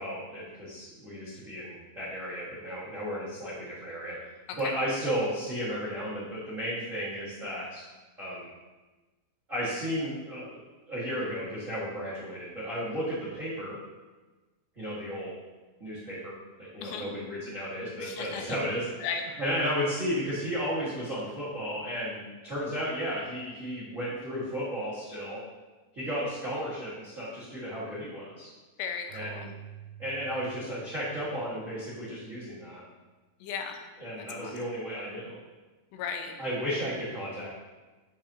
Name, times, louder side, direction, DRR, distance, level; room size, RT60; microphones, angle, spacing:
voice 1, 0.0-4.1 4.5-7.8 8.2-8.5 9.5-10.6 10.9-13.8 14.7-15.3 15.8-16.3 16.6-19.1 19.4-25.4 25.9-28.5 29.1-29.5 30.0-32.8 34.0-35.4 36.4-37.5, equal, 45° right, -10 dB, 0.9 m, -34 dB
voice 2, 18.0-18.4 19.0-19.2 28.8-29.5 33.4-33.8 34.4-34.5 35.9-36.3, left 6 dB, 85° left, 4 dB, 3.0 m, -35 dB
Keyboard (musical), 29.1-32.6, right 10 dB, 90° right, 2.1 m, -49 dB
7.9 x 7.2 x 2.8 m, 1.2 s
omnidirectional pair, 4.9 m